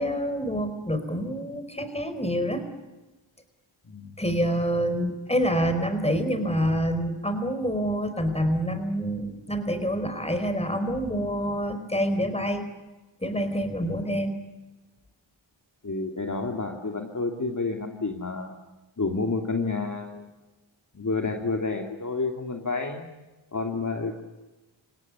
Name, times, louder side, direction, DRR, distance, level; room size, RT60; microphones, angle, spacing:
voice 1, 0.0-2.6 4.2-12.7 13.2-14.4, equal, 15° left, 9 dB, 4.9 m, -27 dB
voice 2, 15.8-18.6 19.0-20.3 20.9-23.1 23.5-24.2, left 3 dB, 40° left, 3 dB, 2.8 m, -29 dB
28.0 x 17.5 x 9.9 m, 1.1 s
cardioid pair, 55°, 46 cm